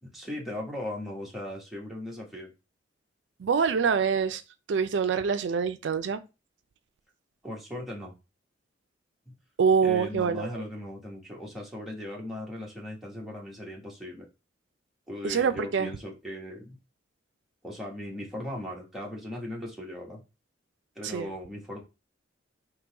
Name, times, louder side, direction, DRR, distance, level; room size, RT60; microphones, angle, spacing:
voice 1, 0.0-2.5 7.4-8.1 9.8-14.3 15.1-16.8 17.6-20.2 20.9-21.8, left 1 dB, ahead, 1.1 m, -38 dB
voice 2, 3.4-4.4 4.7-6.2 9.6-10.6 15.2-15.9 21.0-21.3, right 6 dB, 70° right, 0.4 m, -25 dB
3.8 x 2.9 x 4.6 m
head